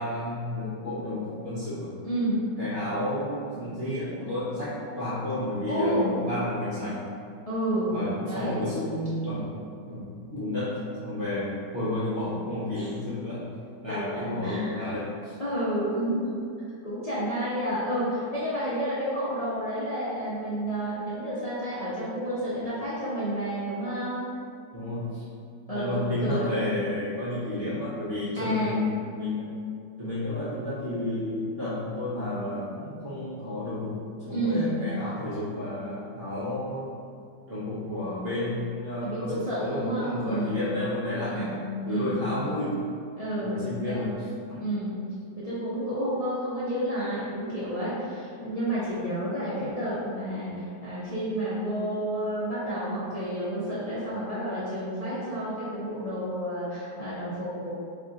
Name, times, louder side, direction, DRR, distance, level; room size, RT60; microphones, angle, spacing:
voice 1, 0.0-1.9 2.6-7.1 7.9-13.5 13.8-15.4 24.7-25.2 25.7-29.5 30.0-36.9 37.5-41.5 41.8-42.8 43.4-44.2 44.5-44.6, left 1 dB, 55° right, -10 dB, 0.7 m, -31 dB
voice 2, 2.0-2.5 5.7-6.2 7.4-8.6 12.7-12.9 13.9-14.9 15.4-16.4 16.8-24.2 25.7-26.6 28.4-28.8 34.3-34.8 39.0-40.6 41.2-41.6 41.9-42.5 43.2-44.0 44.6-57.7, right 1 dB, 60° left, -12 dB, 0.3 m, -30 dB
3.4 x 2.4 x 3.8 m, 2.4 s
omnidirectional pair, 1.9 m